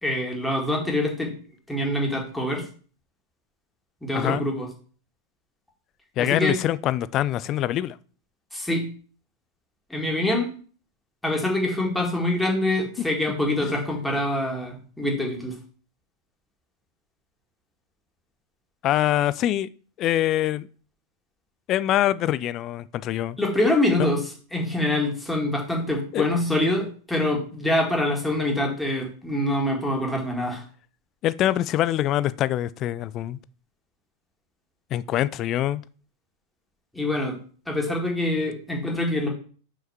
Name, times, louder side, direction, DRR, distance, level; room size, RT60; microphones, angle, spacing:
voice 1, 0.0-1.3 1.7-2.6 4.0-4.7 6.2-6.6 8.5-8.9 9.9-10.5 11.2-15.6 23.4-30.6 36.9-37.4 37.7-39.3, left 1 dB, 5° left, 2.1 m, -25 dB
voice 2, 6.2-8.0 13.6-13.8 18.8-19.7 20.0-20.7 21.7-23.4 26.1-26.3 31.2-33.4 34.9-35.8, left 13 dB, 35° left, 0.4 m, -24 dB
5.6 x 5.3 x 4.9 m
figure-of-eight pair, 90°, 0 cm